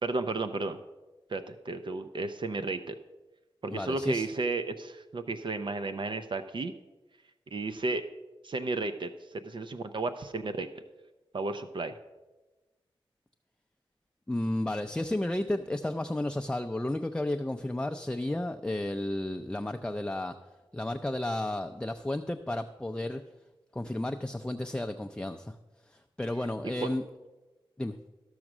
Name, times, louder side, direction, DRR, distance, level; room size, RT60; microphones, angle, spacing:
voice 1, 0.0-0.8 1.3-2.9 3.6-6.7 7.5-8.1 8.4-9.1 9.4-10.7 11.3-12.0 26.8-26.9, right 3 dB, 60° right, 9 dB, 0.6 m, -33 dB
voice 2, 3.7-4.3 14.3-20.3 20.7-23.2 23.7-25.6 25.8-27.0 27.8-28.0, left 1 dB, 10° left, 6 dB, 0.5 m, -32 dB
13.5 x 6.4 x 6.0 m, 1.1 s
wide cardioid pair, 75°, 9 cm